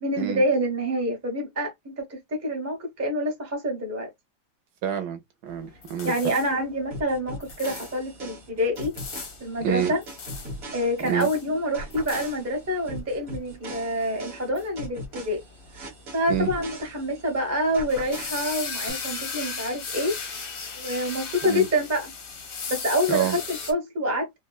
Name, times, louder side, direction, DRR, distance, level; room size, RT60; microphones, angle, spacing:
voice 1, 0.0-4.1 6.0-9.0 9.4-10.0 10.7-15.4 15.7-20.1 20.8-22.1 22.7-24.3, equal, 15° right, 0.5 m, -27 dB
voice 2, 4.8-6.1 9.6-9.9 11.0-11.3 16.3-16.5 21.4-21.7 23.1-23.4, right 10 dB, 75° right, 1.2 m, -28 dB
sound 1, 5.5-23.7, left 5 dB, 50° left, 0.6 m, -38 dB
sound 2, 6.9-11.4 11.7-17.4 17.7-18.9, right 1 dB, 45° right, 1.0 m, -40 dB
3.4 x 2.2 x 2.3 m
omnidirectional pair, 1.8 m